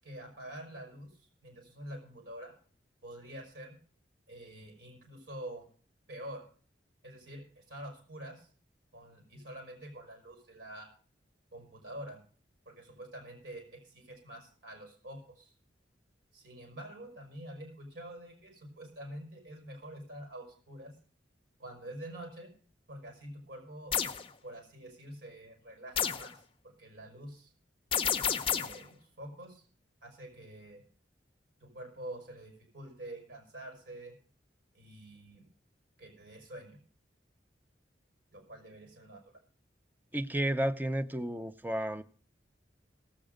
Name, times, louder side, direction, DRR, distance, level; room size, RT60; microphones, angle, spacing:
voice 1, 0.0-1.1 1.4-2.5 3.0-3.8 4.3-5.6 6.1-6.5 7.0-8.5 8.9-10.9 11.5-12.2 12.6-15.5 16.3-20.9 21.6-22.5 22.9-23.9 24.4-27.5 28.5-29.7 30.0-30.8 31.6-34.1 34.7-35.4 36.0-36.8 38.3-39.2, right 1 dB, 70° right, 2 dB, 4.9 m, -47 dB
sound 1, 23.9-24.2 26.0-26.3 27.9-28.8, left 8 dB, 30° left, 0.7 m, -30 dB
voice 2, 40.1-42.0, right 1 dB, 10° right, 11 dB, 0.7 m, -32 dB
17.5 x 7.7 x 5.0 m, 0.43 s
head